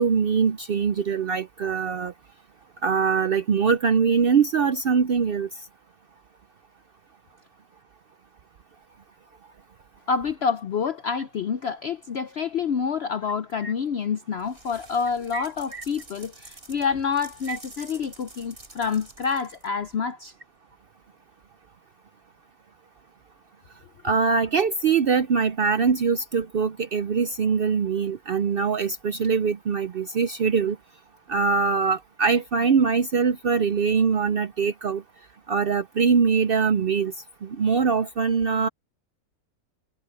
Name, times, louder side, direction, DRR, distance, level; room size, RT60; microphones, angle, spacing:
voice 1, 0.0-2.1 2.8-5.5 13.6-13.7 15.3-15.4 15.7-15.8 17.5-17.6 24.0-30.8 31.3-35.0 35.5-37.1 37.6-38.7, right 5 dB, 90° right, 0.5 m, -22 dB
voice 2, 10.1-20.3, left 6 dB, 70° left, 0.6 m, -27 dB
sound 1, 14.4-19.9, right 2 dB, 35° right, 5.0 m, -48 dB
omnidirectional pair, 1.8 m